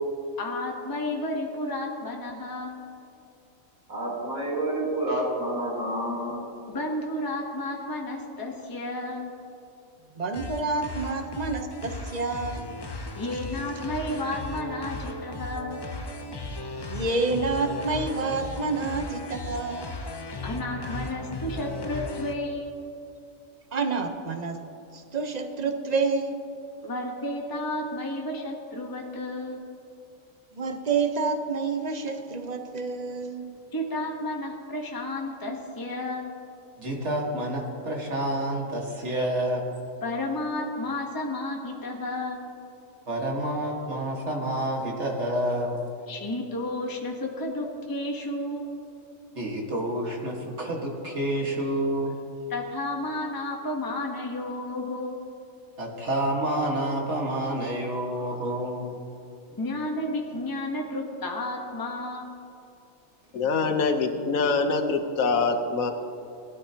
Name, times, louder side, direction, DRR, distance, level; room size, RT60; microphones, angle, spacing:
voice 1, 0.4-2.8 6.7-9.3 13.1-15.9 20.4-22.7 26.8-29.7 33.7-36.3 40.0-42.4 46.1-48.7 52.5-55.2 59.6-62.3, left 1 dB, 15° left, 0 dB, 1.1 m, -32 dB
voice 2, 3.9-6.4, right 1 dB, 80° right, -4 dB, 3.7 m, -29 dB
voice 3, 10.1-12.8 16.9-20.0 23.7-24.6 24.9-26.4 30.5-33.6, right 4 dB, 35° right, 6 dB, 0.9 m, -28 dB
sound 1, 10.3-22.3, left 2 dB, 35° left, 0.4 m, -36 dB
voice 4, 36.8-39.7 43.1-45.8 49.4-52.1 55.8-59.0, right 1 dB, 55° right, -1 dB, 1.9 m, -28 dB
voice 5, 63.3-65.9, left 4 dB, 75° left, 7 dB, 1.4 m, -24 dB
18.0 x 12.5 x 2.9 m, 2.8 s
omnidirectional pair, 1.4 m